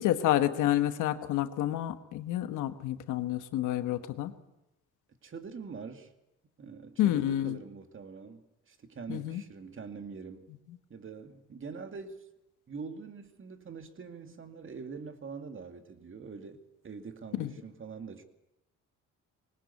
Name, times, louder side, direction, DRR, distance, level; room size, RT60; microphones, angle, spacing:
voice 1, 0.0-4.3 7.0-7.5 9.1-9.4 17.4-17.5, left 13 dB, 90° left, 10 dB, 1.4 m, -29 dB
voice 2, 5.2-6.1 6.6-10.5 10.9-12.2 12.7-18.2, right 5 dB, 40° right, 7 dB, 2.4 m, -44 dB
21.0 x 19.0 x 8.4 m, 0.92 s
cardioid pair, 90°, 30 cm